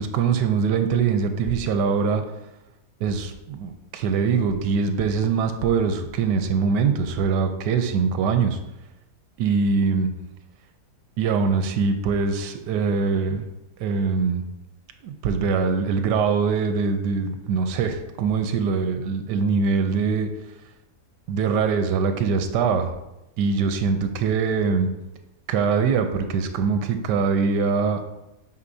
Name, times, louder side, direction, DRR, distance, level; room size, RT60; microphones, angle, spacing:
voice 1, 0.0-2.2 3.0-8.6 9.4-10.1 11.2-13.5 13.8-14.4 15.0-20.3 21.3-22.9 23.4-24.9 25.5-28.1, right 5 dB, 85° right, 7 dB, 1.3 m, -23 dB
8.4 x 4.8 x 2.7 m, 0.96 s
omnidirectional pair, 1.8 m